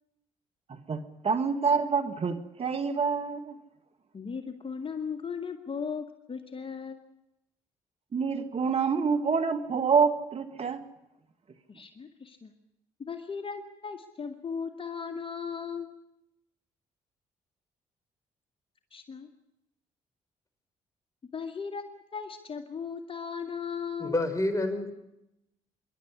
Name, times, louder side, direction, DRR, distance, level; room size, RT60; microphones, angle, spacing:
voice 1, 0.7-3.6 8.1-10.8, right 5 dB, 45° right, 1.9 m, -27 dB
voice 2, 4.1-7.1 11.7-12.5 13.0-16.0 18.9-19.3 21.3-24.2, left 6 dB, 40° left, 2.1 m, -37 dB
voice 3, 24.0-24.9, left 2 dB, 25° left, 5.1 m, -28 dB
26.0 x 11.5 x 9.8 m
hypercardioid pair, 50°, 14 cm